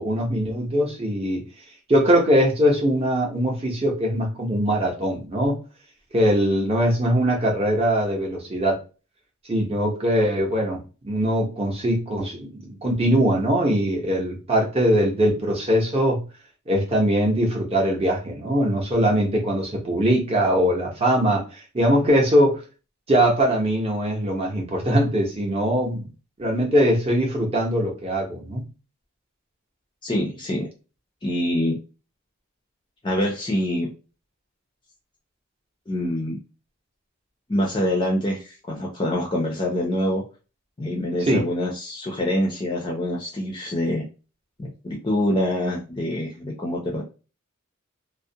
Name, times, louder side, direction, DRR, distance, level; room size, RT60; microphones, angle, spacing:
voice 1, 0.0-1.4 1.9-5.6 6.1-8.8 9.5-16.2 16.7-21.4 21.7-22.6 23.1-26.1 26.4-28.6 41.3-41.5, equal, 25° right, -1 dB, 0.7 m, -21 dB
voice 2, 30.0-30.7 31.2-31.8 33.0-33.9 35.9-36.4 37.5-40.2 40.8-44.0 44.6-47.0, left 1 dB, 20° left, -1 dB, 0.5 m, -25 dB
2.3 x 2.1 x 2.7 m, 0.32 s
head